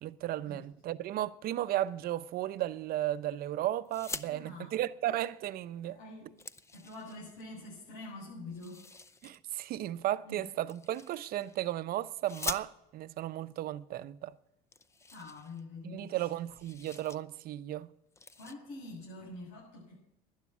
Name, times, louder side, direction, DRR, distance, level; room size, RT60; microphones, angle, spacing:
voice 1, 0.0-6.0 9.2-14.4 15.8-17.9, right 13 dB, 50° right, 0.7 m, -35 dB
sound 1, 3.9-4.3 5.6-5.7 6.0-7.4 8.5-9.4 10.7-11.6 12.2-13.1 14.0-14.1 14.3-14.4 14.7-16.0 16.3-17.2 17.5-17.7 18.1-18.6, left 3 dB, 15° left, 0.6 m, -44 dB
voice 2, 4.2-4.8 5.8-6.3 6.7-8.9 10.2-10.4 15.1-16.3 18.3-19.9, left 2 dB, 85° left, 8.0 m, -46 dB
12.0 x 10.5 x 8.5 m
supercardioid pair, 110°, 20 cm